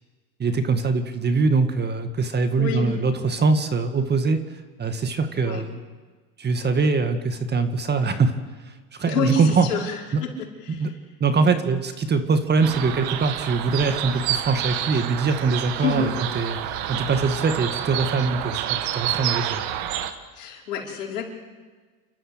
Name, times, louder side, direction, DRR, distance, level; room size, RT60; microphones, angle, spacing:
voice 1, 0.4-4.4 4.8-5.8 6.4-8.3 8.7-9.7 10.1-10.2 10.7-10.9 11.2-16.6 16.9-19.6, right 4 dB, 20° right, 8 dB, 1.9 m, -23 dB
voice 2, 2.6-3.0 5.4-5.7 9.0-10.9 12.7-12.9 15.8-16.2 20.4-21.2, left 4 dB, 85° left, -1 dB, 5.3 m, -28 dB
sound 1, 12.6-20.1, right 11 dB, 55° right, 1.9 m, -29 dB
29.5 x 13.0 x 8.1 m, 1.4 s
supercardioid pair, 115°, 45 cm